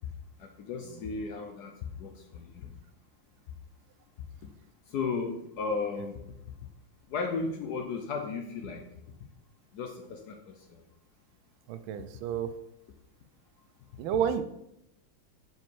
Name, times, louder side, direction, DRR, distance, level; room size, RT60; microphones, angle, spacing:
voice 1, 0.4-1.7 2.0-2.7 4.9-6.2 7.1-8.8 9.7-10.8, left 4 dB, 65° left, 4 dB, 1.0 m, -35 dB
voice 2, 11.7-12.5 14.0-14.4, right 8 dB, 85° right, 10 dB, 1.4 m, -30 dB
5.4 x 4.6 x 4.5 m, 0.81 s
omnidirectional pair, 2.2 m